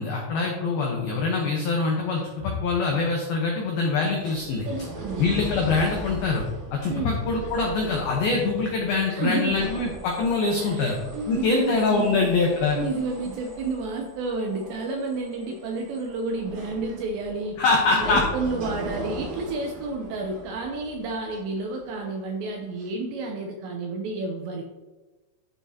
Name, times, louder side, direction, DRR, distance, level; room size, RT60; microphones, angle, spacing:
voice 1, 0.0-4.7 5.2-6.5 6.7-11.0 11.3-12.8 17.6-18.3, left 3 dB, 85° left, 0 dB, 2.1 m, -24 dB
sound 1, 4.0-22.2 22.8-22.9, right 1 dB, 40° right, 3.7 m, -39 dB
voice 2, 4.6-5.2 6.9-7.2 9.1-9.7 10.6-12.3 12.7-17.6 17.9-24.6, right 3 dB, 80° right, 2 dB, 2.6 m, -30 dB
12.0 x 7.3 x 2.8 m, 1.2 s
omnidirectional pair, 5.9 m